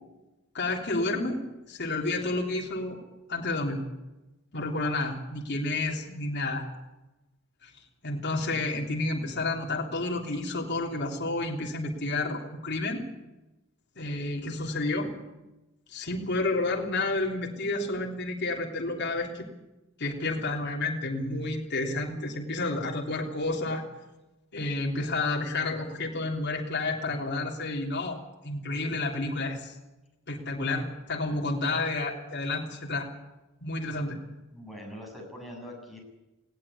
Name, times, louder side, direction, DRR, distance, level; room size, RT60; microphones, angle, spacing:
voice 1, 0.5-1.4 1.7-3.0 3.3-3.8 4.5-6.6 7.6-7.7 8.0-13.0 14.0-15.1 15.9-19.5 20.0-23.8 24.5-28.2 28.4-29.7 30.3-33.1 33.6-34.2, left 2 dB, 55° left, -1 dB, 3.4 m, -30 dB
voice 2, 34.5-36.0, equal, ahead, 0 dB, 7.6 m, -43 dB
20.5 x 17.0 x 8.6 m, 1.0 s
head